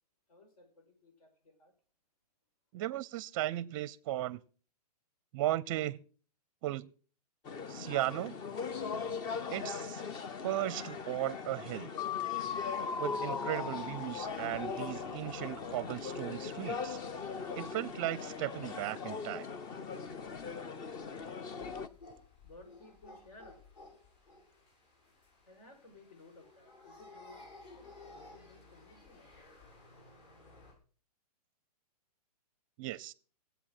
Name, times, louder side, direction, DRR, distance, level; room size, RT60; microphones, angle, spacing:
voice 1, 0.3-1.7 22.4-23.7 25.4-27.5 28.1-29.5, left 2 dB, 65° left, 5.3 m, -58 dB
voice 2, 2.7-4.4 5.3-6.0 6.6-6.9 7.7-8.3 9.5-10.0 10.4-11.9 13.0-17.0 17.5-19.5 32.8-33.1, right 15 dB, 30° right, 0.5 m, -36 dB
sound 1, 7.4-21.9, left 5 dB, 20° left, 0.6 m, -40 dB
sound 2, 12.0-15.8, left 7 dB, 90° left, 1.0 m, -39 dB
sound 3, 12.2-30.7, left 2 dB, 45° left, 6.8 m, -57 dB
18.5 x 8.2 x 6.0 m
hypercardioid pair, 150°, 20 cm